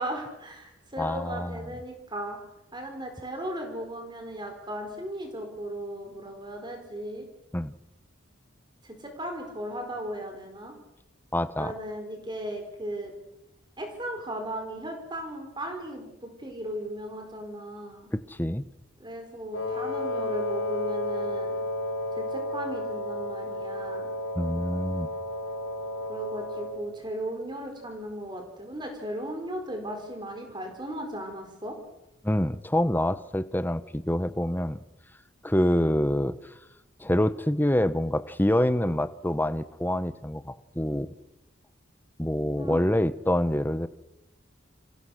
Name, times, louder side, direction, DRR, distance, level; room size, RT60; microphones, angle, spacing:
voice 1, 0.0-2.4 2.7-7.2 8.8-10.7 11.6-13.1 13.8-18.1 19.0-21.5 22.2-24.1 26.1-31.7 42.6-43.0, right 1 dB, 20° right, 4 dB, 4.6 m, -36 dB
voice 2, 1.0-1.7 7.5-7.7 11.3-11.7 18.1-18.6 24.4-25.1 32.2-34.8 35.4-36.4 37.0-41.1 42.2-43.9, left 1 dB, 10° left, 14 dB, 1.0 m, -26 dB
Wind instrument woodwind instrument, 19.5-26.8, left 1 dB, 75° left, 5.4 m, -32 dB
29.5 x 28.0 x 6.5 m, 0.89 s
head